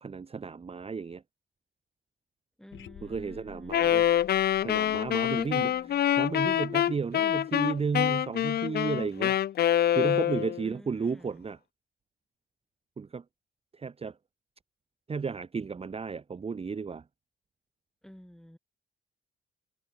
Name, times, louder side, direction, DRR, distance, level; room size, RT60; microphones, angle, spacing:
voice 1, 0.0-1.2 3.0-4.1 4.6-5.7 6.2-9.4 9.9-11.6 13.0-13.2 13.7-14.2 15.1-17.0, right 5 dB, 30° right, 1.2 m, -33 dB
voice 2, 2.6-3.8 5.3-6.2 10.6-11.5 18.0-18.6, equal, ahead, 6.8 m, -50 dB
sound 1, 2.7-6.8, left 11 dB, 75° left, 6.0 m, -52 dB
Wind instrument woodwind instrument, 3.7-10.7, left 11 dB, 55° left, 0.6 m, -26 dB
cardioid pair, 90°, 20 cm